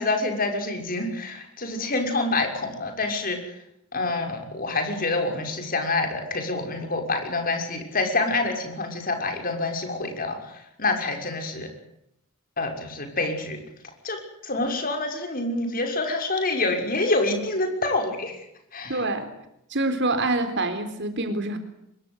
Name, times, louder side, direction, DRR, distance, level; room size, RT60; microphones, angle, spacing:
voice 1, 0.0-3.4 3.9-11.7 12.6-13.6 14.0-18.4 18.7-19.0, left 2 dB, 40° left, 4 dB, 6.1 m, -27 dB
voice 2, 18.9-19.3 19.7-21.6, right 2 dB, 55° right, 8 dB, 4.0 m, -26 dB
25.0 x 22.5 x 8.1 m, 0.78 s
head